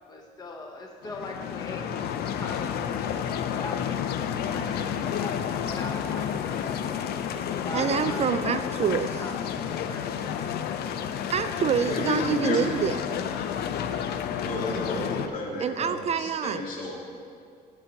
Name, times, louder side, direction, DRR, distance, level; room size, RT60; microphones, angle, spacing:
voice 1, 0.1-4.8 5.2-8.3 9.0-10.3, left 2 dB, 25° left, 0 dB, 1.0 m, -41 dB
sound 1, 1.0-15.3, left 8 dB, 70° left, 0.6 m, -30 dB
voice 2, 7.7-9.2 11.3-13.0 15.6-16.6, right 7 dB, 40° right, 11 dB, 0.3 m, -26 dB
voice 3, 11.8-12.8 13.5-16.9, left 2 dB, 55° left, -3 dB, 2.4 m, -33 dB
16.0 x 6.6 x 2.9 m, 2.3 s
cardioid pair, 110°, 17 cm